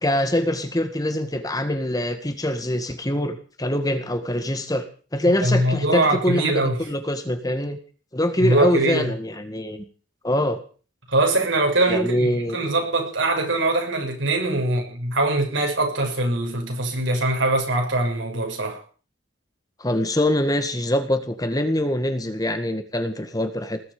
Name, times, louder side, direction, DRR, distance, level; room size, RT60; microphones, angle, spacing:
voice 1, 0.0-4.8 5.1-7.8 8.1-9.8 10.2-10.6 11.9-12.6 19.8-23.8, left 1 dB, 20° left, 1.9 m, -24 dB
voice 2, 5.2-6.8 8.4-9.1 11.1-18.8, right 2 dB, 75° right, 6.7 m, -22 dB
20.0 x 8.6 x 8.5 m
head